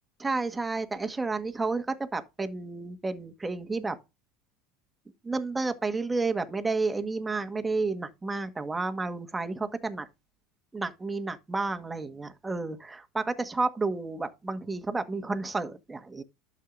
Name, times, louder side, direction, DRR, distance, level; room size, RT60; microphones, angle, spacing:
voice 1, 0.2-3.9 5.2-10.1 10.7-16.2, right 3 dB, 15° right, 1.5 m, -31 dB
12.0 x 6.6 x 2.6 m
hypercardioid pair, 85°, 0 cm